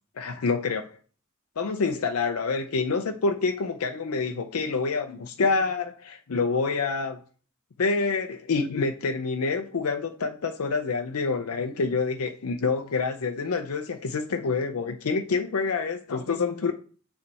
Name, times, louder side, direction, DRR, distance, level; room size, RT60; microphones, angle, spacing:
voice 1, 0.2-0.9 1.6-7.2 7.8-16.7, left 4 dB, 85° left, 0.5 m, -27 dB
6.8 x 3.3 x 4.2 m
head